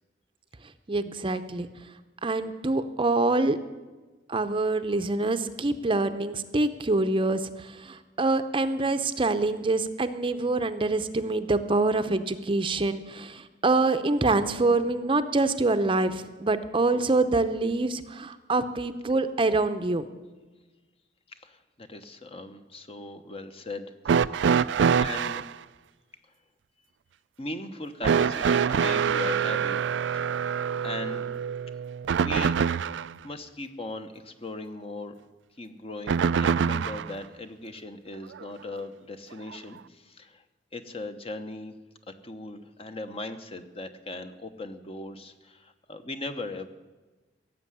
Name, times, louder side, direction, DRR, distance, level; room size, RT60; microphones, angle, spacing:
voice 1, 0.9-1.7 2.2-3.6 4.3-20.1, right 2 dB, 30° right, 10 dB, 0.7 m, -25 dB
voice 2, 21.4-24.2 25.0-25.4 27.4-29.8 30.3-30.4 30.8-31.3 32.2-32.6 33.2-35.1 35.6-40.4 40.7-41.7 42.2-46.7, left 2 dB, 35° left, 8 dB, 1.0 m, -38 dB
sound 1, 24.0-25.5 28.0-33.1 36.1-37.1 38.4-38.5 39.5-39.6, right 7 dB, 85° right, 0.4 m, -25 dB
17.0 x 7.5 x 9.8 m, 1.2 s
head